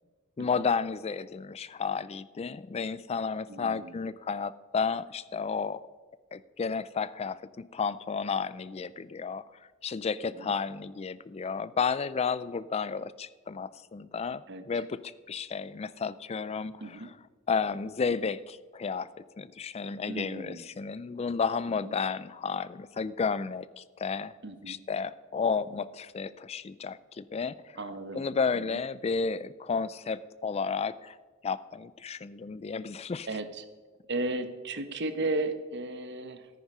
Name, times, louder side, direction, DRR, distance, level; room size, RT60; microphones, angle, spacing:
voice 1, 0.4-5.8 6.3-9.4 9.8-17.1 17.5-19.1 19.4-24.3 24.7-27.8 28.1-31.2 31.4-33.3, left 5 dB, 30° left, 17 dB, 0.3 m, -32 dB
voice 2, 3.5-4.0 10.4-10.5 14.5-14.6 16.8-17.1 20.1-20.6 21.8-21.9 24.4-24.8 27.8-28.2 28.5-28.8 33.3-33.7 34.1-36.5, right 2 dB, 55° right, 10 dB, 1.0 m, -35 dB
14.0 x 9.4 x 5.5 m, 1.4 s
head